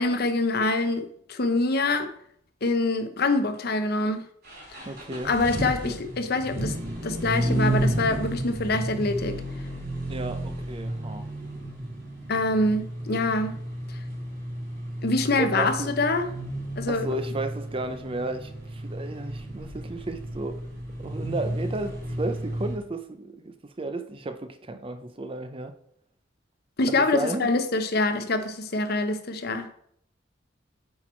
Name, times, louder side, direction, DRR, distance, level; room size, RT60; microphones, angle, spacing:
voice 1, 0.0-2.1 2.6-4.2 4.7-4.8 5.2-6.8 7.0-9.4 12.3-13.5 15.0-16.3 16.8-17.1 26.8-29.7, left 2 dB, 55° left, 0.8 m, -25 dB
sound 1, 4.4-22.7, right 1 dB, 55° right, 2.8 m, -32 dB
voice 2, 4.9-5.3 5.8-5.9 10.1-11.3 15.4-16.0 16.9-20.6 21.0-25.7 26.9-27.5, right 2 dB, 30° right, 0.6 m, -33 dB
8.3 x 4.6 x 4.4 m
head